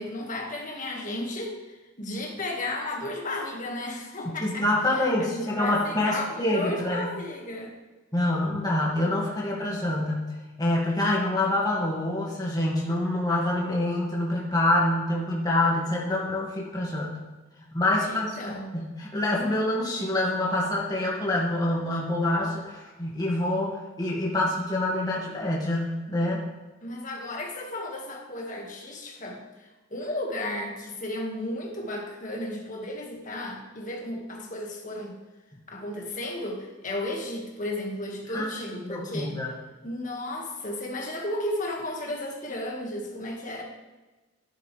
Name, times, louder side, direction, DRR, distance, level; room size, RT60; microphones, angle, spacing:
voice 1, 0.0-4.6 5.0-7.7 18.0-18.7 26.8-35.1 35.7-39.3 39.8-43.6, left 1 dB, 40° left, 0 dB, 2.0 m, -34 dB
voice 2, 4.4-7.1 8.1-10.3 10.6-17.2 17.7-18.4 18.7-26.4 38.3-38.5 38.8-39.5, left 1 dB, 20° left, -4 dB, 2.2 m, -26 dB
12.0 x 11.0 x 3.4 m, 1.2 s
head